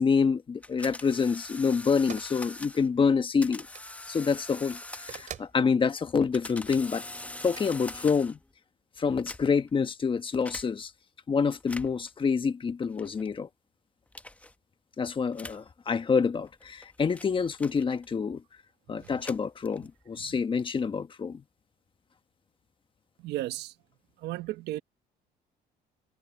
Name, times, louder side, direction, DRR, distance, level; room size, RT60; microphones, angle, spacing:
voice 1, 0.0-3.7 4.1-4.8 5.1-7.0 7.4-8.4 9.0-10.9 11.3-13.5 15.0-18.4 18.9-21.4, left 5 dB, 30° left, 1.3 m, -27 dB
sound 1, 0.6-2.9 3.4-5.5 6.1-8.5 9.1-9.7 10.5-10.7 11.6-12.1 13.0-13.3 14.1-14.5 15.3-15.7 16.5-18.2 19.0-20.0, left 2 dB, 10° left, 0.9 m, -43 dB
sound 2, 2.1-2.3 3.6-3.9 5.1-5.6 7.4-7.7, right 8 dB, 50° right, 4.0 m, -43 dB
voice 2, 23.2-23.7 24.2-24.8, right 16 dB, 80° right, 1.0 m, -35 dB
cardioid pair, 110°, 17 cm